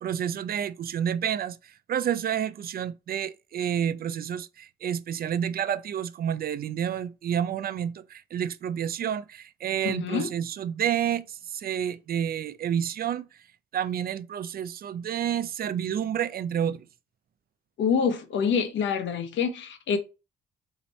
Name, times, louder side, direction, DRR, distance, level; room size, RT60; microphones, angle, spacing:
voice 1, 0.0-1.6 1.9-13.3 13.7-16.9, right 9 dB, 50° right, 0.5 m, -29 dB
voice 2, 9.8-10.3 17.8-20.0, left 6 dB, 70° left, 0.9 m, -26 dB
4.1 x 2.9 x 4.1 m
cardioid pair, 90°, 20 cm